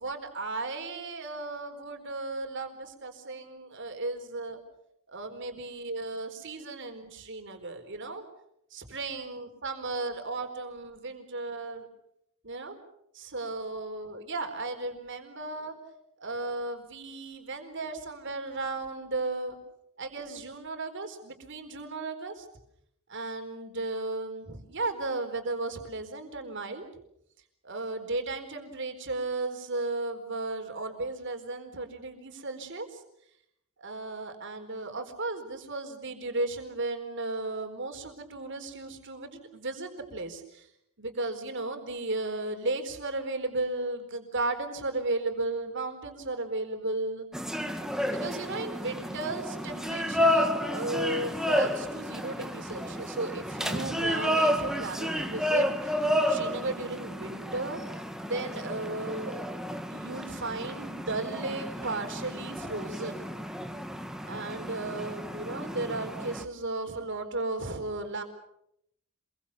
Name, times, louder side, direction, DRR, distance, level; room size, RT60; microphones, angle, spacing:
voice 1, 0.0-4.6 5.1-8.2 8.7-11.9 12.5-12.8 13.1-15.8 16.2-19.6 20.0-22.5 23.1-26.8 27.6-33.0 33.8-40.7 41.0-47.3 48.1-57.8 58.2-63.3 64.2-68.2, right 2 dB, 55° right, 6 dB, 4.3 m, -35 dB
sound 1, 47.3-66.4, equal, ahead, 1.6 m, -31 dB
27.0 x 22.5 x 7.0 m, 0.76 s
head